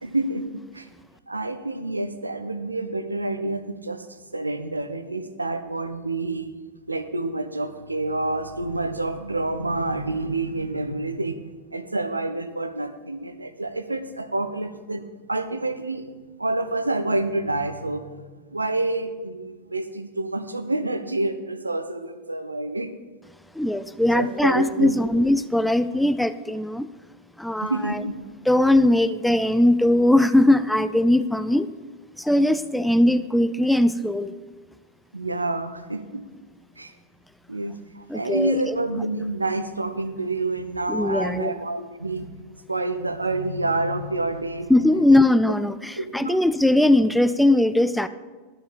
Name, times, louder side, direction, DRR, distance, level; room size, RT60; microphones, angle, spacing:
voice 1, 0.0-0.9 1.3-6.5 6.9-22.9 24.1-25.3 27.6-28.1 35.1-36.2 36.8-36.9 37.5-44.7 46.0-46.4, right 2 dB, 80° right, 10 dB, 0.8 m, -28 dB
voice 2, 23.6-26.9 27.4-28.0 28.5-31.7 32.2-34.3 38.1-38.8 40.9-41.5 44.7-48.1, left 1 dB, ahead, 13 dB, 0.4 m, -20 dB
12.0 x 7.0 x 7.2 m, 1.3 s
figure-of-eight pair, 90°, 0 cm